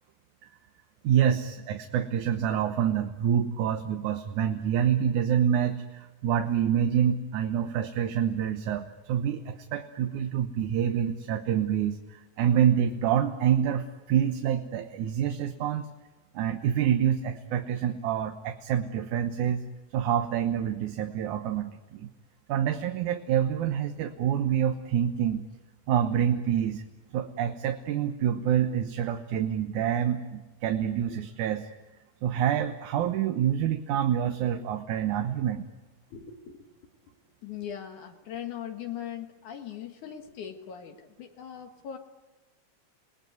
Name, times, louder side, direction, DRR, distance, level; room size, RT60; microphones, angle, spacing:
voice 1, 1.0-15.9 16.3-19.6 19.9-22.1 22.5-25.5 25.9-26.8 27.1-31.7 32.2-35.7, right 9 dB, 75° right, 6 dB, 2.5 m, -27 dB
voice 2, 36.1-36.7 37.4-42.0, left 9 dB, 75° left, 4 dB, 3.0 m, -40 dB
29.0 x 19.5 x 9.4 m, 1.1 s
omnidirectional pair, 3.5 m